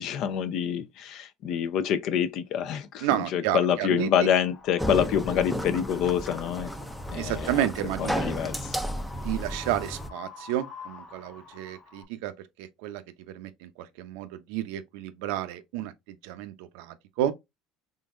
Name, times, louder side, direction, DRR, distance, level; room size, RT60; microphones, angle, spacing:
voice 1, 0.0-6.7 7.1-7.7 8.0-8.6, left 9 dB, 55° left, 0.6 m, -27 dB
voice 2, 3.0-4.3 7.1-8.2 9.1-12.3 12.6-15.9 16.2-17.3, right 12 dB, 85° right, 0.5 m, -31 dB
Wind, 3.9-12.0, left 4 dB, 30° left, 0.9 m, -48 dB
sound 1, 4.8-10.1, equal, ahead, 0.4 m, -33 dB
3.8 x 3.5 x 2.5 m
cardioid pair, 135°, 0 cm